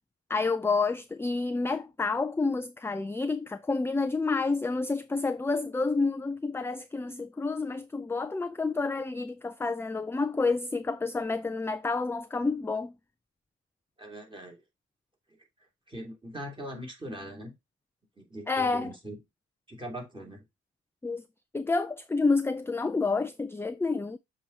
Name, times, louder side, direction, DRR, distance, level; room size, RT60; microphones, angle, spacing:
voice 1, 0.3-12.9 18.5-18.9 21.0-21.2 21.5-24.2, left 3 dB, 10° left, 0.4 m, -29 dB
voice 2, 14.0-14.6 15.9-17.5 18.2-19.2 19.7-20.5, right 1 dB, 15° right, 2.7 m, -41 dB
7.1 x 3.0 x 4.9 m
cardioid pair, 90°, 30 cm